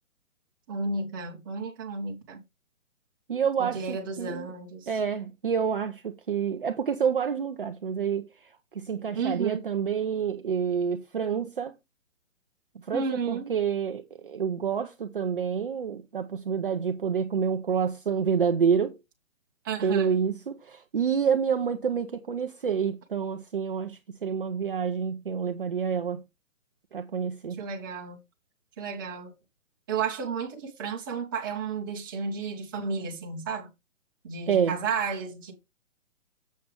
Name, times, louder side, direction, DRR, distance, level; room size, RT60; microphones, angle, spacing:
voice 1, 0.7-2.4 3.6-4.9 9.1-9.6 12.9-13.5 19.6-20.2 27.6-28.2 28.8-29.3 29.9-33.7 34.2-35.5, right 5 dB, 15° right, 1.3 m, -32 dB
voice 2, 3.3-4.5 4.9-11.8 12.8-19.0 19.8-26.2 26.9-27.6 34.5-34.8, right 7 dB, 40° right, 0.7 m, -28 dB
8.4 x 7.7 x 3.3 m
hypercardioid pair, 170°, 40 cm